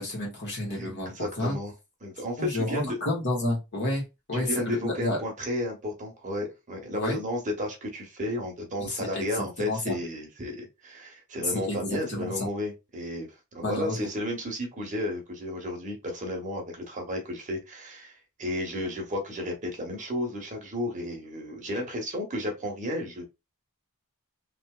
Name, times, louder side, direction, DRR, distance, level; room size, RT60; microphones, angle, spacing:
voice 1, 0.0-1.6 2.4-5.2 6.9-7.2 8.8-9.2 9.6-10.0 11.5-12.3 13.6-14.1, left 1 dB, 55° left, 1.5 m, -30 dB
voice 2, 0.7-1.7 2.0-3.0 4.3-23.2, left 1 dB, 35° right, 0.9 m, -33 dB
2.9 x 2.8 x 2.3 m
head